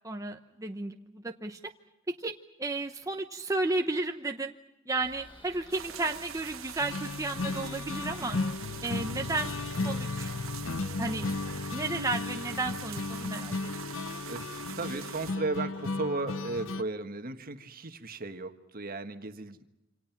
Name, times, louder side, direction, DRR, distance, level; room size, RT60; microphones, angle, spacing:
voice 1, 0.0-1.6 2.1-2.3 2.6-4.5 4.9-8.4 8.8-9.5 9.8-10.3 11.0-11.3 11.6-13.7, right 2 dB, 15° right, 4 dB, 0.9 m, -33 dB
sound 1, 5.0-11.6, left 1 dB, 25° left, 6.3 m, -51 dB
sound 2, 5.7-15.3, right 9 dB, 80° right, 1.0 m, -44 dB
sound 3, 6.8-16.8, left 3 dB, 70° left, 0.8 m, -35 dB
voice 2, 14.7-19.6, right 2 dB, 45° right, 8 dB, 1.5 m, -35 dB
27.5 x 26.5 x 6.0 m, 0.97 s
head